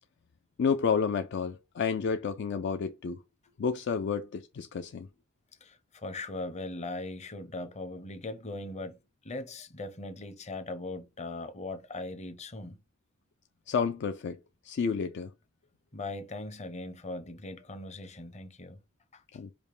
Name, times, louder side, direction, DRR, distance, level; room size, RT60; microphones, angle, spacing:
voice 1, 0.6-3.2 3.6-5.1 13.7-14.4 14.6-15.3 19.3-19.5, left 6 dB, 55° left, 0.4 m, -30 dB
voice 2, 5.6-9.0 9.2-12.8 15.9-18.8 19.1-19.2, left 2 dB, 35° left, 0.8 m, -39 dB
5.2 x 2.1 x 4.8 m
head